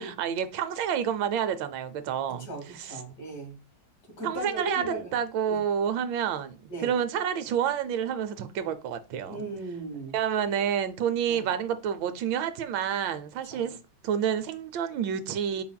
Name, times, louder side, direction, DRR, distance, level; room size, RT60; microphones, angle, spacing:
voice 1, 0.0-2.5 2.7-3.0 4.2-9.4 10.1-15.6, right 8 dB, 85° right, 1.3 m, -29 dB
voice 2, 2.5-3.5 4.2-5.2 5.5-5.6 6.7-6.9 9.3-10.2 11.3-11.4 13.5-13.7, right 2 dB, 55° left, 2.1 m, -37 dB
5.7 x 4.1 x 2.2 m
omnidirectional pair, 2.0 m